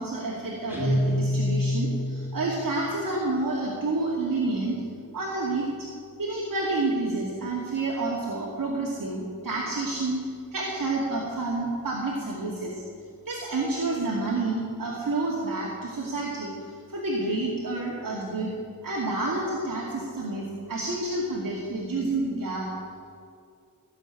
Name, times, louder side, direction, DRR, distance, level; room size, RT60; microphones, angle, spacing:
voice 1, 0.0-4.8 5.1-5.9 6.2-12.8 13.2-18.5 18.8-22.7, right 2 dB, 75° right, -4 dB, 2.5 m, -29 dB
Guitar, 0.7-2.4, left 1 dB, 5° right, 4.9 m, -26 dB
17.5 x 7.2 x 9.9 m, 2.3 s
wide cardioid pair, 75°, 34 cm